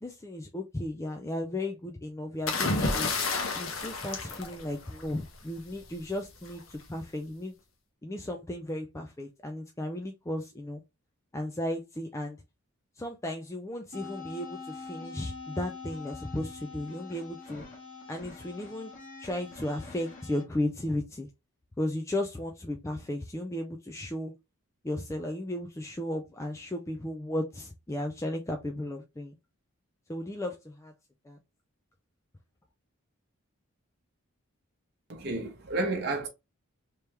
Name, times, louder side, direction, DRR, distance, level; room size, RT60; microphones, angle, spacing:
voice 1, 0.0-3.1 3.5-7.5 8.0-10.8 11.3-12.4 13.0-17.6 18.1-18.9 19.2-21.3 21.8-24.3 24.8-29.3 30.1-30.9 31.3-31.4, left 1 dB, 15° left, 0.3 m, -35 dB
sound 1, 2.5-5.2 6.5-6.8, left 3 dB, 65° left, 0.9 m, -30 dB
sound 2, 13.9-20.4, left 4 dB, 35° left, 1.3 m, -44 dB
voice 2, 35.1-36.3, right 2 dB, 45° right, 0.9 m, -31 dB
3.3 x 2.9 x 3.3 m
head